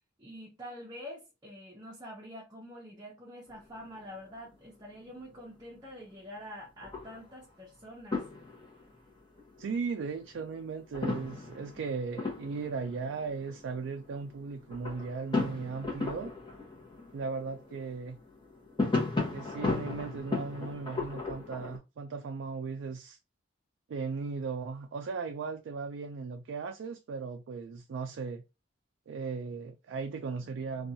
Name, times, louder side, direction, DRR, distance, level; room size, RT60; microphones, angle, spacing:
voice 1, 0.2-8.2, equal, 20° right, 0.6 m, -46 dB
sound 1, 3.5-4.2 4.5-4.6 5.1-5.8 6.8-7.5 8.0-21.8, left 3 dB, 25° left, 0.8 m, -36 dB
voice 2, 9.6-16.3 17.1-18.2 19.3-23.2 23.9-28.4 29.1-30.9, right 4 dB, 70° right, 0.3 m, -37 dB
2.6 x 2.3 x 2.7 m
head